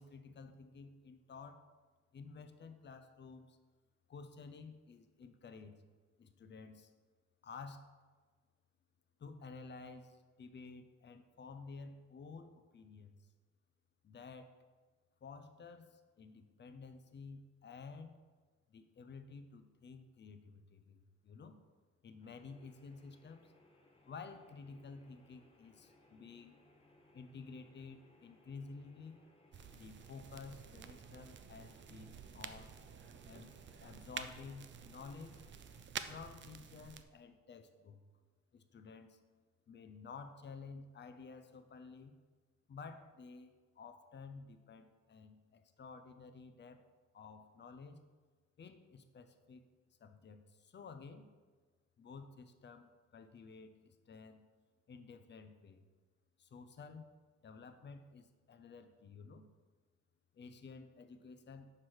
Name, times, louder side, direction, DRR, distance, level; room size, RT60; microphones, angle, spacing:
voice 1, 0.0-1.6 2.1-3.6 4.1-5.8 6.2-6.9 7.4-7.9 9.2-13.3 14.0-14.5 15.2-18.2 18.7-21.6 22.0-23.5 24.1-26.6 27.1-29.2 29.7-32.7 33.2-33.5 33.8-35.4 36.1-38.0 38.5-39.2 39.7-42.2 42.7-46.8 47.1-48.0 48.6-49.6 50.0-51.3 52.0-54.5 54.9-55.8 56.4-57.1 57.4-59.4 60.3-61.7, left 4 dB, 35° left, 10 dB, 0.6 m, -52 dB
sound 1, 22.2-35.9, left 2 dB, 20° left, 1.0 m, -67 dB
sound 2, 29.5-37.0, right 7 dB, 40° right, 0.4 m, -50 dB
5.9 x 4.7 x 4.6 m, 1.4 s
cardioid pair, 90°, 30 cm